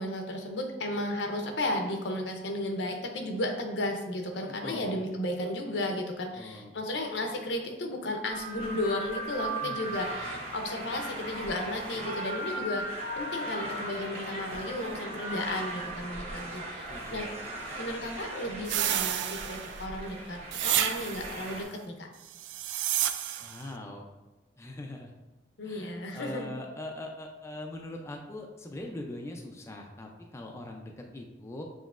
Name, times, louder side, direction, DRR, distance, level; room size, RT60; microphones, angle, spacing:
voice 1, 0.0-17.3 17.8-20.4 20.6-22.1 25.6-26.5, left 1 dB, 80° left, 3 dB, 0.7 m, -34 dB
voice 2, 4.5-4.9 6.4-6.7 9.6-10.1 16.9-17.3 23.4-24.1 24.6-25.1 25.6-31.6, left 1 dB, 15° left, 1 dB, 0.4 m, -42 dB
sound 1, 8.3-21.6, right 1 dB, 35° right, 1.1 m, -38 dB
sound 2, 18.7-19.9 20.5-21.4 22.3-23.6, right 11 dB, 85° right, 0.3 m, -30 dB
7.2 x 3.1 x 2.4 m, 1.1 s
head